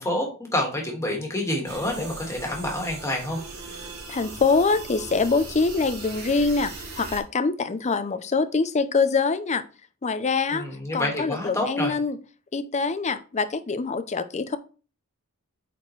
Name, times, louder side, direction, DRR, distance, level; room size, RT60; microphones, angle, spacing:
voice 1, 0.0-3.4 10.5-11.9, left 1 dB, 15° left, 1 dB, 1.8 m, -28 dB
sound 1, 1.7-7.2, right 3 dB, 75° right, 2.7 m, -39 dB
voice 2, 4.1-6.7 7.0-9.6 10.0-10.7 10.9-12.2 12.5-14.6, left 4 dB, 30° left, 12 dB, 0.5 m, -24 dB
8.4 x 4.3 x 3.2 m, 0.36 s
head